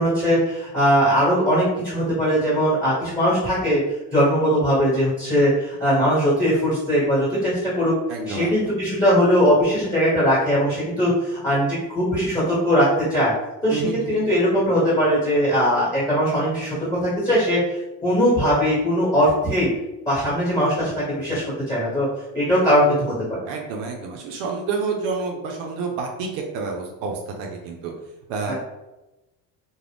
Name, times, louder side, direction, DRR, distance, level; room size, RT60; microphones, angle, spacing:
voice 1, 0.0-3.8 4.1-8.0 8.3-13.3 13.6-19.7 20.0-22.1 22.3-23.5 28.5-28.6, equal, 5° left, -10 dB, 1.4 m, -20 dB
voice 2, 8.1-8.8 13.7-14.2 23.5-27.9 28.3-28.5, right 4 dB, 80° right, 1 dB, 0.7 m, -29 dB
2.4 x 2.2 x 3.3 m, 0.99 s
supercardioid pair, 105°, 44 cm